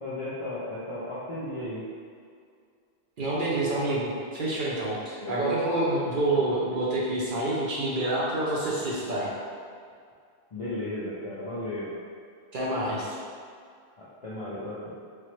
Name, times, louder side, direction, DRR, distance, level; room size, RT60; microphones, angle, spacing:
voice 1, 0.0-1.8 5.2-5.6 6.1-6.5 10.5-11.9 14.0-14.9, left 1 dB, 55° left, -10 dB, 0.4 m, -35 dB
voice 2, 3.2-9.3 12.5-13.2, right 2 dB, 60° right, -6 dB, 0.7 m, -27 dB
3.3 x 2.0 x 3.0 m, 2.2 s
omnidirectional pair, 1.1 m